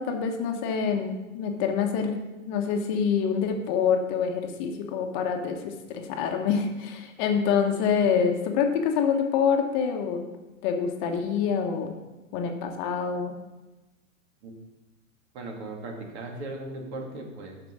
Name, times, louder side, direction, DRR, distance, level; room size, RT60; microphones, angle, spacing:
voice 1, 0.0-2.2 2.5-10.2 10.6-12.0 12.3-13.3, left 6 dB, 35° left, 4 dB, 1.1 m, -26 dB
voice 2, 15.3-17.6, right 2 dB, 55° right, 1 dB, 2.4 m, -37 dB
7.2 x 6.0 x 7.3 m, 1.1 s
hypercardioid pair, 135°, 40 cm